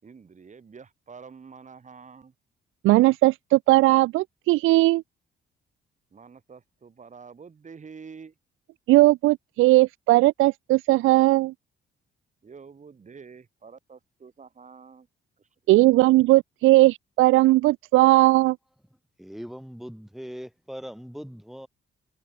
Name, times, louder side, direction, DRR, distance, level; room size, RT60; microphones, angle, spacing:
voice 1, 0.0-2.3 6.1-8.3 12.4-15.1 15.4-15.5, right 5 dB, 40° right, 6.3 m, -47 dB
voice 2, 2.8-5.0 8.9-11.5 15.7-18.6, right 18 dB, 90° right, 0.5 m, -18 dB
voice 3, 19.2-21.7, equal, ahead, 2.9 m, -40 dB
cardioid pair, 90°, 20 cm